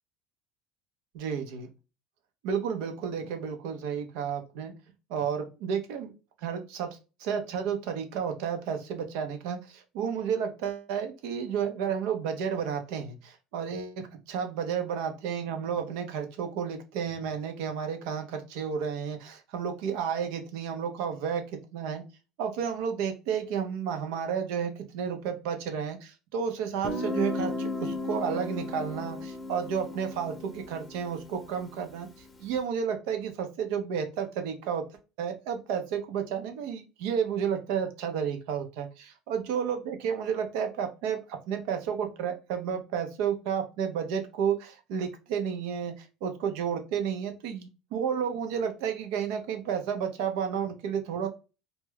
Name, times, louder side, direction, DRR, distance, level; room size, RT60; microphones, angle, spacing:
voice 1, 1.1-1.7 2.4-4.7 5.1-6.1 6.4-22.0 22.4-32.1 32.4-34.8 35.2-51.3, right 7 dB, 75° right, 6 dB, 0.6 m, -32 dB
Guitar, 26.8-32.4, left 2 dB, 20° left, 0.7 m, -35 dB
2.3 x 2.1 x 3.2 m, 0.30 s
supercardioid pair, 95°, 0 cm